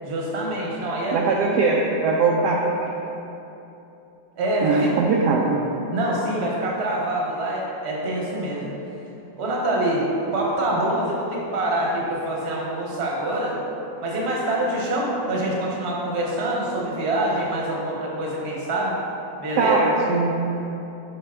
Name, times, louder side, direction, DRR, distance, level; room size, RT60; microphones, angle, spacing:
voice 1, 0.0-1.2 4.4-4.9 5.9-8.7 9.4-10.0 10.3-13.6 14.0-18.9 19.4-19.8, right 1 dB, 45° right, -3 dB, 1.1 m, -25 dB
voice 2, 1.1-2.9 4.6-5.7 19.6-20.3, right 3 dB, 75° right, -2 dB, 1.0 m, -21 dB
6.6 x 5.2 x 3.6 m, 2.9 s
omnidirectional pair, 2.1 m